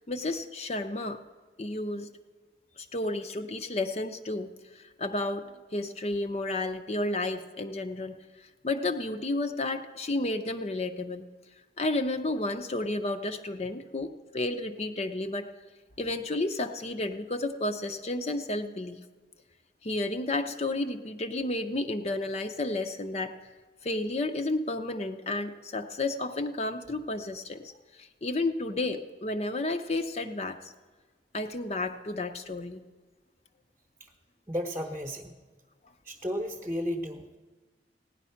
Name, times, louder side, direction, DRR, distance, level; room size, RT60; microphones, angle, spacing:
voice 1, 0.1-1.2 1.6-2.1 2.8-11.2 11.8-15.5 16.0-19.1 19.8-23.5 23.8-30.7 31.3-32.8, left 2 dB, 35° left, 7 dB, 0.6 m, -32 dB
voice 2, 34.5-35.4 36.0-37.4, equal, 15° right, 3 dB, 0.9 m, -33 dB
16.5 x 10.0 x 5.7 m, 1.4 s
head